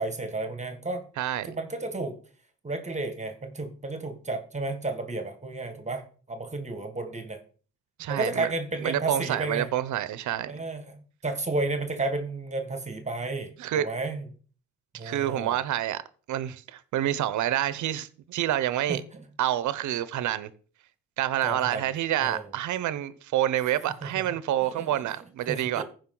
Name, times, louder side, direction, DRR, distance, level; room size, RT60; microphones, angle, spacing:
voice 1, 0.0-1.0 1.4-2.2 2.6-6.0 6.3-7.4 8.1-9.7 10.5-14.2 15.0-15.6 18.9-19.2 21.4-21.9 22.2-22.5 24.2-24.3 24.8-24.9 25.5-25.8, right 2 dB, 25° right, 1.7 m, -32 dB
voice 2, 1.2-1.5 8.0-8.5 8.8-10.6 13.6-13.9 15.0-16.0 16.3-19.0 19.4-20.5 21.2-25.8, right 12 dB, 75° right, 0.8 m, -28 dB
15.0 x 5.1 x 3.9 m
cardioid pair, 90°, 30 cm